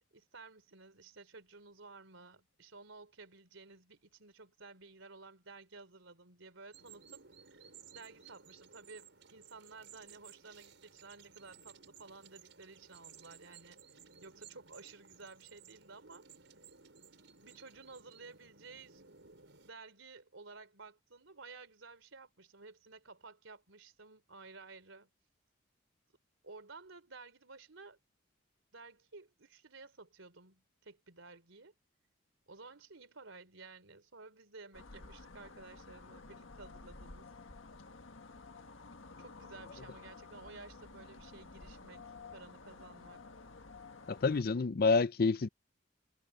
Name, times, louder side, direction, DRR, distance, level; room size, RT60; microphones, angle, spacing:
voice 1, 0.0-7.2 7.9-13.8 14.2-16.3 17.4-19.0 19.6-25.1 26.4-28.0 28.7-31.7 32.5-37.3 39.2-43.2, right 3 dB, 85° right, 3.4 m, -54 dB
sound 1, 6.7-19.7, right 7 dB, 70° right, 5.2 m, -58 dB
sound 2, 34.7-44.4, left 3 dB, 85° left, 1.6 m, -52 dB
voice 2, 44.1-45.5, left 4 dB, 50° left, 0.5 m, -28 dB
head